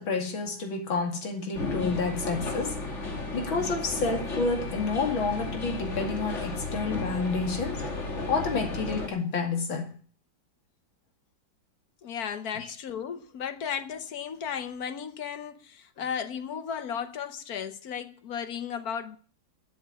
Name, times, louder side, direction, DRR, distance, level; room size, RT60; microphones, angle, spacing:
voice 1, 0.0-7.9 8.3-10.0 12.6-12.7, left 4 dB, 85° left, 3.1 m, -30 dB
sound 1, 1.5-9.1, left 2 dB, 35° left, 2.3 m, -34 dB
voice 2, 12.0-19.2, left 7 dB, 55° left, 1.3 m, -35 dB
12.5 x 7.2 x 9.0 m
omnidirectional pair, 2.2 m